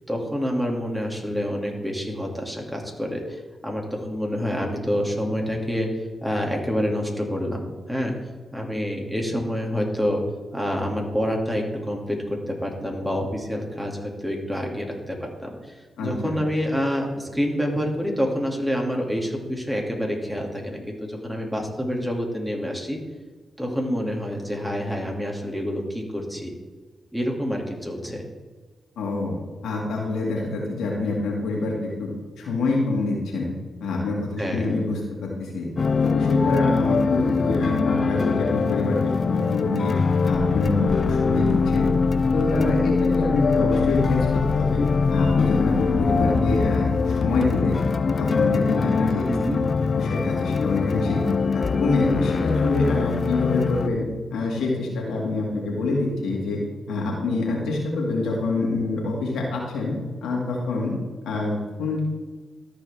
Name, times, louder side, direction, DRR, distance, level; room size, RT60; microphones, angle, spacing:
voice 1, 0.1-5.9 6.2-8.1 8.5-10.2 10.5-23.0 23.6-26.5 27.1-28.2 34.4-34.7 49.3-49.6, equal, 5° right, 0 dB, 2.4 m, -27 dB
voice 2, 16.0-16.4 29.0-29.4 29.6-32.1 32.4-33.5 33.8-35.7 36.0-40.0 40.2-41.9 42.3-44.8 45.1-47.8 48.2-49.2 49.9-51.2 51.5-54.0 54.3-56.6 56.9-59.9 60.2-60.9 61.3-62.0, left 3 dB, 85° left, -2 dB, 2.1 m, -26 dB
sound 1, 35.8-53.9, left 4 dB, 55° left, 0.4 m, -22 dB
13.5 x 5.2 x 3.5 m, 1.3 s
supercardioid pair, 40°, 0 cm